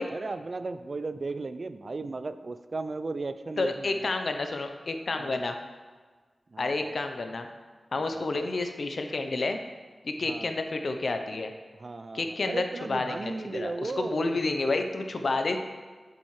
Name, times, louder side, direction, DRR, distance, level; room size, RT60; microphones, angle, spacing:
voice 1, 0.1-4.1 5.2-5.4 6.5-6.9 8.1-8.5 10.3-10.5 11.8-14.4, right 3 dB, 55° right, 11 dB, 0.4 m, -36 dB
voice 2, 3.6-5.6 6.6-7.5 7.9-9.6 10.0-11.5 12.1-15.6, left 3 dB, 70° left, 6 dB, 0.7 m, -30 dB
7.6 x 7.1 x 3.2 m, 1.4 s
cardioid pair, 50°, 0 cm